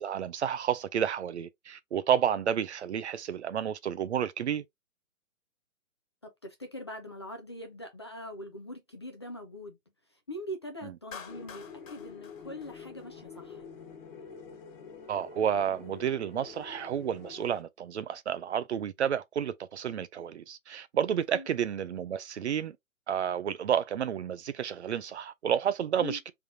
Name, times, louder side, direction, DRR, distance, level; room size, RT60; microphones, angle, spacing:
voice 1, 0.0-4.6 10.8-10.9 15.1-22.8 23.1-26.3, right 9 dB, 55° right, 0.6 m, -31 dB
voice 2, 6.2-9.8 10.1-13.6 21.3-21.5 26.0-26.2, left 1 dB, 20° left, 0.4 m, -42 dB
Clapping, 11.1-13.4, left 6 dB, 65° left, 1.4 m, -48 dB
sound 1, 11.3-17.6, left 5 dB, 40° left, 1.5 m, -47 dB
3.5 x 3.5 x 2.7 m
hypercardioid pair, 145°, 41 cm